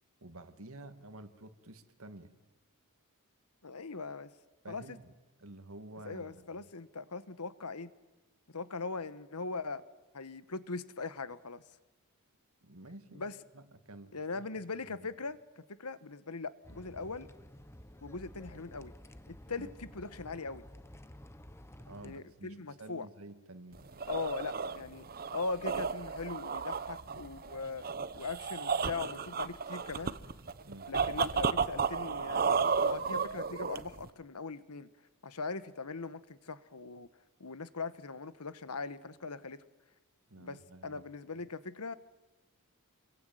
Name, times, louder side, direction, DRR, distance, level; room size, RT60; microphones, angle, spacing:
voice 1, 0.2-2.3 4.6-5.1 5.4-6.5 12.6-14.4 14.9-15.1 19.6-19.7 21.9-23.9 30.7-30.9 40.3-41.0, right 2 dB, 65° right, 10 dB, 2.0 m, -50 dB
voice 2, 3.6-4.3 4.7-5.0 6.0-7.9 8.5-9.8 10.1-11.6 13.1-13.3 14.1-15.4 15.7-17.3 18.0-18.9 19.3-20.6 22.0-23.1 24.1-25.1 25.3-27.8 28.2-30.2 30.9-34.9 35.2-37.1 37.4-39.6 40.4-41.9, left 4 dB, 85° left, 14 dB, 1.3 m, -40 dB
sound 1, 16.6-22.2, left 1 dB, 10° left, 1.0 m, -52 dB
sound 2, 23.7-34.1, right 5 dB, 45° right, 1.0 m, -33 dB
28.0 x 22.5 x 9.3 m, 1.1 s
head